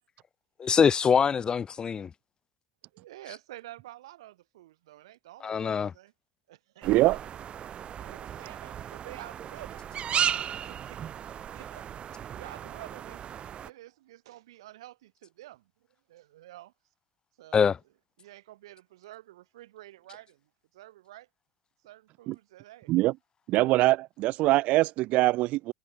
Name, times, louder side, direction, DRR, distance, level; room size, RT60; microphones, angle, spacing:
voice 1, 0.6-2.1 5.4-5.9 17.5-17.8, left 6 dB, 30° left, 0.7 m, -23 dB
voice 2, 2.9-6.1 6.5-7.2 8.0-11.0 11.4-11.9 12.3-15.7 16.1-16.7 17.4-17.7 18.2-21.3 21.8-22.9, right 15 dB, 80° right, 5.9 m, -49 dB
sound 1, 6.8-13.7, right 9 dB, 40° right, 2.0 m, -35 dB
voice 3, 6.8-7.2 22.3-22.4 22.9-23.1 23.5-25.7, right 18 dB, 60° right, 0.8 m, -23 dB
hypercardioid pair, 85°, 3 cm